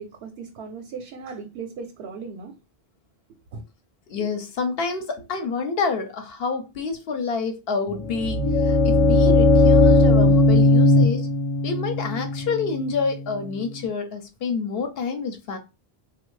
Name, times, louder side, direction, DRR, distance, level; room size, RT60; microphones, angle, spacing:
voice 1, 0.0-2.5 3.5-3.6, right 5 dB, 80° right, 0.8 m, -37 dB
voice 2, 4.1-11.3 11.6-15.6, left 4 dB, 70° left, 0.9 m, -28 dB
sound 1, 7.9-13.8, left 2 dB, 55° left, 0.4 m, -18 dB
3.4 x 2.2 x 3.1 m
omnidirectional pair, 1.0 m